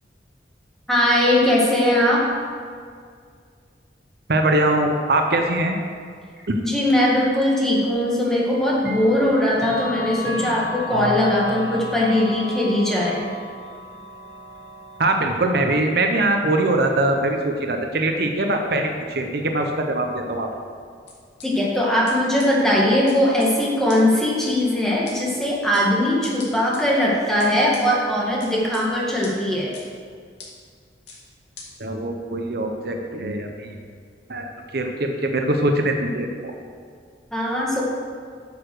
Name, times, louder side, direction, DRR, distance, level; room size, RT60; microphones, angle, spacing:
voice 1, 0.9-2.2 6.6-13.2 21.4-29.7 37.3-37.8, left 1 dB, 5° left, -5 dB, 1.8 m, -20 dB
voice 2, 4.3-5.8 6.5-6.6 15.0-20.5 31.8-33.7 34.3-36.5, right 2 dB, 60° right, 4 dB, 0.8 m, -22 dB
Clock, 7.4-7.5 8.8-15.6, equal, 80° right, 1.5 m, -32 dB
sound 1, 21.1-21.5 22.1-22.2 22.4-22.5 23.1-23.5 23.9-24.0 24.4-24.5 25.1-25.2 25.7-25.9 26.2-26.8 27.4-27.8 28.4-28.8 29.2-29.3 29.7-29.8 30.4-30.5 31.1-31.2 31.6-31.7, left 5 dB, 80° left, 2.3 m, -40 dB
9.3 x 6.8 x 6.2 m, 2.1 s
head